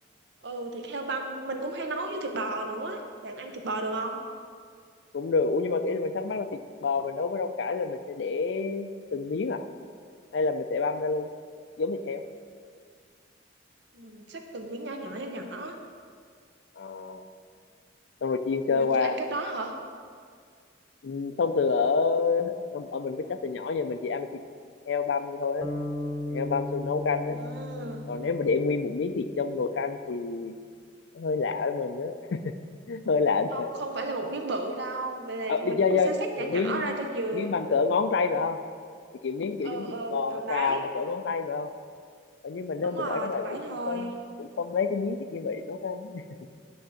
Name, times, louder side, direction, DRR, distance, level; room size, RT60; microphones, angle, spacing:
voice 1, 0.4-4.2 13.9-15.8 18.7-19.7 27.2-28.1 33.5-37.5 39.6-40.8 42.8-44.1, right 2 dB, 60° right, 4 dB, 0.8 m, -34 dB
voice 2, 5.1-9.6 10.3-11.3 11.8-12.3 16.8-17.2 18.2-19.2 21.0-24.4 24.9-25.7 26.3-27.4 28.1-30.6 31.1-32.5 32.9-33.7 35.5-37.0 37.3-38.6 39.2-41.7 42.4-44.1 44.4-46.2, left 4 dB, 65° left, 10 dB, 0.4 m, -28 dB
sound 1, 25.6-29.9, left 1 dB, 20° left, 0.9 m, -36 dB
10.0 x 3.5 x 6.4 m, 2.1 s
head